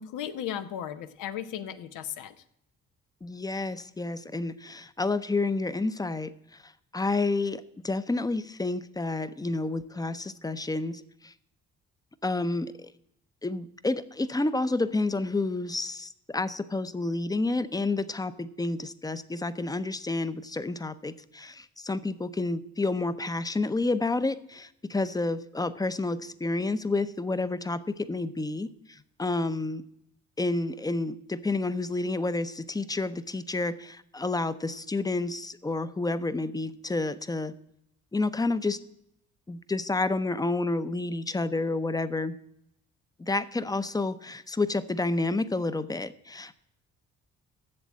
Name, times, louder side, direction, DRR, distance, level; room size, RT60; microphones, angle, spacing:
voice 1, 0.0-2.4, left 10 dB, 90° left, 10 dB, 0.8 m, -36 dB
voice 2, 3.2-6.3 6.9-11.3 12.2-12.9 13.4-29.8 30.4-37.5 38.1-38.8 39.5-42.4 43.2-46.6, left 2 dB, 15° left, 14 dB, 0.6 m, -30 dB
7.7 x 7.1 x 8.4 m, 0.77 s
cardioid pair, 90°, 30 cm